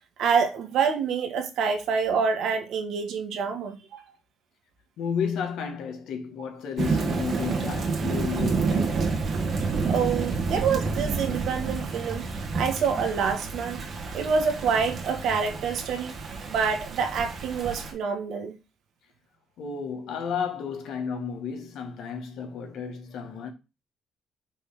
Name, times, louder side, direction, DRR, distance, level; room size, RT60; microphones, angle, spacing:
voice 1, 0.2-4.0 9.8-13.8 14.1-16.2 16.5-18.5, right 6 dB, 80° right, 1.5 m, -27 dB
voice 2, 5.0-9.1 19.6-23.5, left 6 dB, 80° left, 1.8 m, -32 dB
Thunder / Rain, 6.8-17.9, right 4 dB, 50° right, 1.7 m, -29 dB
5.5 x 3.3 x 5.7 m
cardioid pair, 90°, 0 cm